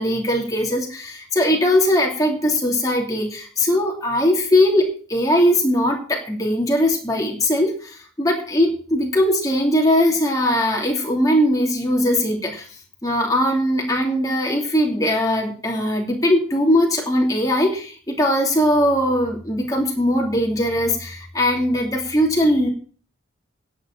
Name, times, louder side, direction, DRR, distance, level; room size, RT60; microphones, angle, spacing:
voice 1, 0.0-12.6 13.0-22.7, left 1 dB, 20° left, 0 dB, 2.7 m, -20 dB
10.5 x 7.2 x 8.5 m, 0.42 s
head